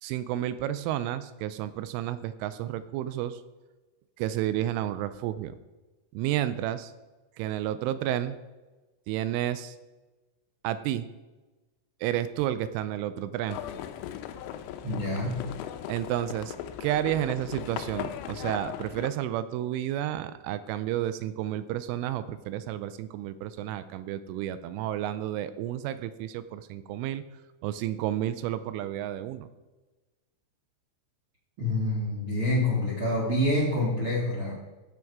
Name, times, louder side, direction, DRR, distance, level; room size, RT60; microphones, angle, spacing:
voice 1, 0.0-3.4 4.2-5.5 6.1-6.9 7.4-8.4 9.1-9.8 10.6-11.1 12.0-13.6 15.9-16.5 16.8-27.2 27.6-29.5, right 12 dB, 85° right, 13 dB, 2.9 m, -31 dB
Livestock farm animals working animals, 13.5-19.1, left 10 dB, 80° left, 3.1 m, -38 dB
voice 2, 14.8-15.5 31.6-34.5, left 1 dB, 60° right, -5 dB, 1.3 m, -27 dB
16.0 x 6.3 x 4.7 m, 1.1 s
omnidirectional pair, 5.9 m